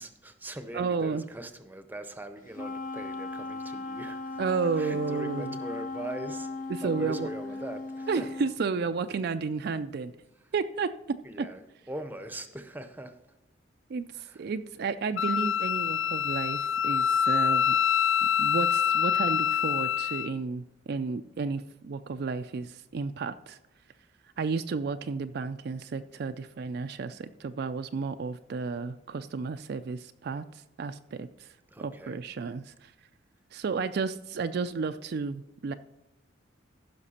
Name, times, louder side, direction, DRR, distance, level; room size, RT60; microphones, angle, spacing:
voice 1, 0.0-4.4 4.8-6.5 6.8-8.5 10.4-10.5 11.2-11.6 11.9-13.2 14.2-14.4 31.7-32.2, right 1 dB, 10° right, 9 dB, 0.7 m, -41 dB
voice 2, 0.7-1.2 4.4-5.6 6.7-7.3 8.1-10.1 10.5-10.9 11.4-11.5 13.9-17.7 18.4-23.6 24.4-30.4 30.8-31.5 31.8-32.9 33.5-35.7, right 5 dB, 55° right, 9 dB, 0.4 m, -32 dB
Wind instrument woodwind instrument, 2.5-8.6, left 3 dB, 45° left, 0.7 m, -37 dB
Wind instrument woodwind instrument 2, 15.2-20.3, left 8 dB, 75° left, 0.3 m, -26 dB
15.0 x 6.0 x 4.2 m, 0.96 s
head